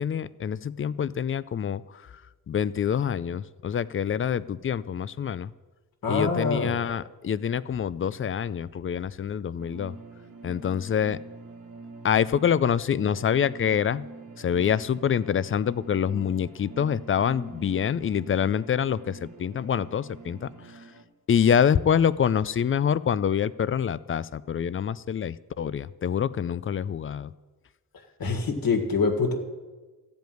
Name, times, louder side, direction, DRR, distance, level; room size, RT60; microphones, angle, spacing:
voice 1, 0.0-1.8 2.5-5.5 6.1-9.9 10.4-11.2 12.0-14.1 14.4-20.5 21.3-27.3, left 8 dB, 35° left, 18 dB, 0.4 m, -26 dB
voice 2, 6.0-6.7 28.2-29.4, left 4 dB, 70° left, 2 dB, 1.9 m, -25 dB
sound 1, 9.6-21.0, right 3 dB, 65° right, 1.6 m, -45 dB
14.5 x 5.2 x 9.2 m, 1.3 s
cardioid pair, 95°, 36 cm